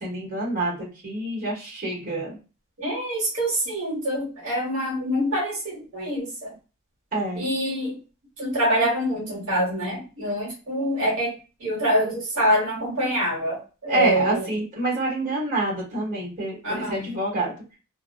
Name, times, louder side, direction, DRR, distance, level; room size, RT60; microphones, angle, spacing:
voice 1, 0.0-2.3 7.1-7.5 13.9-17.5, right 1 dB, 40° right, -6 dB, 1.2 m, -27 dB
voice 2, 2.8-6.5 7.4-8.0 8.4-11.3 11.6-14.4 16.6-17.1, equal, 70° right, -4 dB, 1.1 m, -25 dB
2.6 x 2.2 x 2.2 m, 0.33 s
head